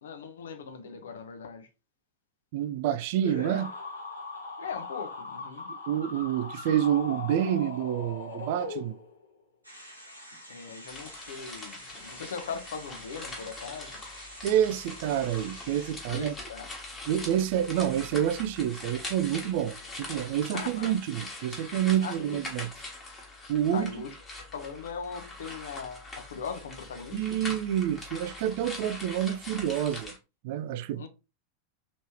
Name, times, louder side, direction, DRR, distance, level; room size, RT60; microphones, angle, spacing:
voice 1, 0.0-1.7 4.6-5.7 10.5-14.0 16.1-16.7 20.5-20.9 22.0-22.4 23.7-24.1 24.5-27.4 30.9-31.1, left 6 dB, 65° left, 0.7 m, -39 dB
voice 2, 2.5-3.7 5.7-8.9 14.4-16.3 17.1-22.7 23.5-23.9 27.1-30.1 30.4-31.1, right 10 dB, 50° right, 0.3 m, -28 dB
sound 1, 3.2-9.3, left 4 dB, 80° left, 1.2 m, -39 dB
sound 2, 9.6-16.0, equal, 90° right, 1.1 m, -48 dB
sound 3, 10.9-30.2, left 2 dB, 20° left, 1.3 m, -43 dB
3.3 x 3.1 x 2.9 m
figure-of-eight pair, 90°, 0 cm